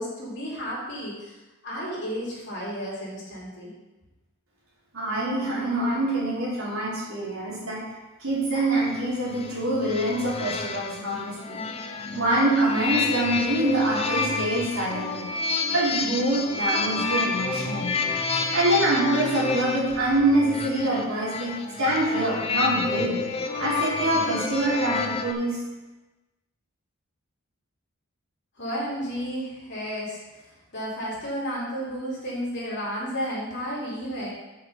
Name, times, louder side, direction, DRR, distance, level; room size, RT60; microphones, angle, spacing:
voice 1, 0.0-1.3 1.6-3.7 28.6-30.2 30.7-34.3, equal, 50° left, -7 dB, 3.4 m, -32 dB
voice 2, 4.9-7.8 8.2-11.6 12.1-15.3 15.7-18.0 18.3-23.2 23.6-25.6, right 1 dB, 70° right, -6 dB, 3.4 m, -25 dB
sound 1, 8.8-25.3, left 4 dB, 25° left, 0.6 m, -30 dB
7.9 x 6.5 x 5.2 m, 1.1 s
head